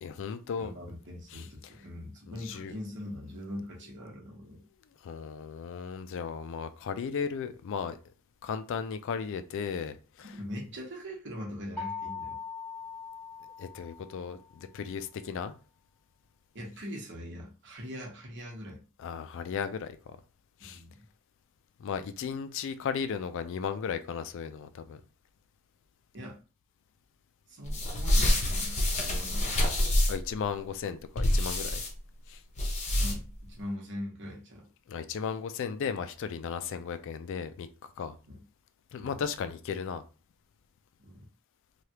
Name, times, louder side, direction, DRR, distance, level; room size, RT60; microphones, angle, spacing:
voice 1, 0.0-0.7 1.3-1.4 2.3-2.7 5.0-8.0 8.4-10.3 13.6-15.5 19.0-20.0 20.6-20.8 21.8-25.0 30.1-31.8 32.3-32.4 34.9-37.7 38.0-38.1 38.9-40.0, left 6 dB, 60° left, 0.3 m, -35 dB
voice 2, 0.6-4.6 10.3-12.4 16.5-18.8 20.6-21.0 26.1-26.4 27.5-29.5 33.0-34.7 38.2-38.4 39.0-39.2 41.0-41.3, left 1 dB, 60° right, 1.1 m, -41 dB
sound 1, 11.8-14.5, left 5 dB, 5° left, 1.2 m, -41 dB
sound 2, 27.6-30.3 31.2-31.9 32.5-33.4, left 1 dB, 35° left, 0.7 m, -27 dB
3.2 x 2.3 x 2.8 m
head